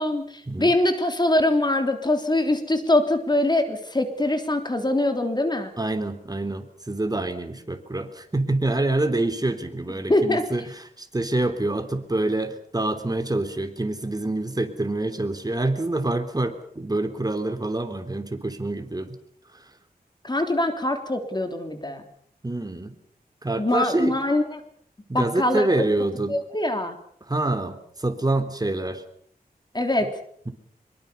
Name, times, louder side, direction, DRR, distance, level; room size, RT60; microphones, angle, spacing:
voice 1, 0.0-5.7 10.1-10.4 20.2-22.0 23.6-24.6 25.1-25.7 26.3-26.9 29.7-30.1, left 1 dB, 25° left, 6 dB, 3.5 m, -23 dB
voice 2, 5.8-19.1 19.5-19.7 22.4-22.9 23.4-24.1 25.1-26.4 27.2-29.0 30.5-30.6, right 2 dB, 25° right, 7 dB, 3.5 m, -26 dB
24.5 x 23.0 x 7.0 m, 0.63 s
wide cardioid pair, 85°, 16 cm